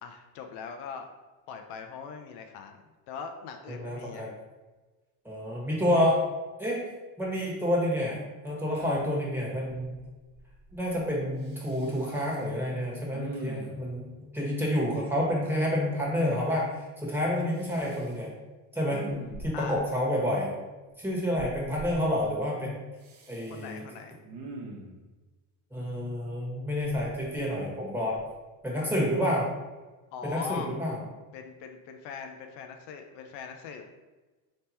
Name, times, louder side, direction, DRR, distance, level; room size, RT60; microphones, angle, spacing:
voice 1, 0.0-1.1 1.5-4.3 8.7-8.9 19.5-19.8 23.5-24.2 29.2-29.4 30.1-30.7 31.3-33.8, left 6 dB, 70° left, 5 dB, 0.6 m, -41 dB
voice 2, 3.7-4.3 5.2-6.2 6.6-6.8 7.2-10.0 10.7-18.3 18.7-19.0 19.4-20.5 21.0-22.7 23.3-23.8 25.7-28.2 28.6-29.5 30.2-31.0, equal, 5° right, -4 dB, 1.4 m, -29 dB
Respiratory sounds, 9.9-10.1 10.3-11.1 11.4-12.4 13.1-13.9 17.5-18.2 18.7-19.8 21.4-22.0 23.0-23.7 24.2-25.0 26.8-27.7 28.1-28.3, right 2 dB, 50° right, 1.0 m, -44 dB
3.5 x 2.9 x 4.2 m, 1.2 s
supercardioid pair, 105°, 42 cm